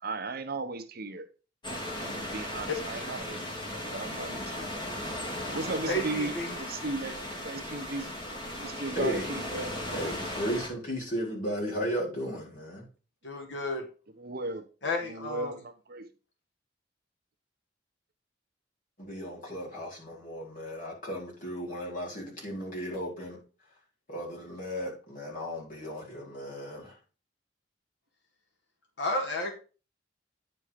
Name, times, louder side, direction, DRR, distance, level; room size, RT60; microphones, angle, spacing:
voice 1, 0.0-1.3 2.0-4.7 5.5-7.2 7.4-8.1 8.6-10.0 14.2-14.6 15.0-16.1, right 3 dB, 55° right, 1.0 m, -36 dB
sound 1, 1.6-10.7, left 1 dB, 25° left, 2.4 m, -37 dB
voice 2, 5.9-6.6 13.2-13.8 14.8-15.5 29.0-29.5, left 1 dB, 70° left, 2.0 m, -32 dB
voice 3, 8.9-9.3 9.9-12.9 19.0-23.4 24.1-27.0, equal, 50° left, 4.4 m, -35 dB
9.6 x 4.4 x 5.1 m
head